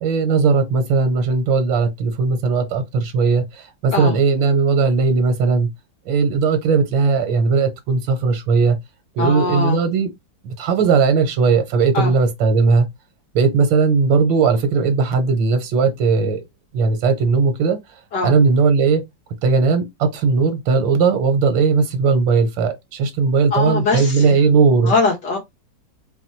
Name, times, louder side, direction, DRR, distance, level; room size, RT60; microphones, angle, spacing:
voice 1, 0.0-5.7 6.1-8.8 9.2-10.1 10.4-12.9 13.3-16.4 16.7-17.8 18.2-19.0 19.4-24.9, right 4 dB, 80° right, 1.6 m, -17 dB
voice 2, 9.2-9.8 11.9-12.1 18.1-18.3 23.5-24.4 24.8-25.4, left 4 dB, 65° left, 2.0 m, -21 dB
4.2 x 2.3 x 4.3 m
omnidirectional pair, 2.0 m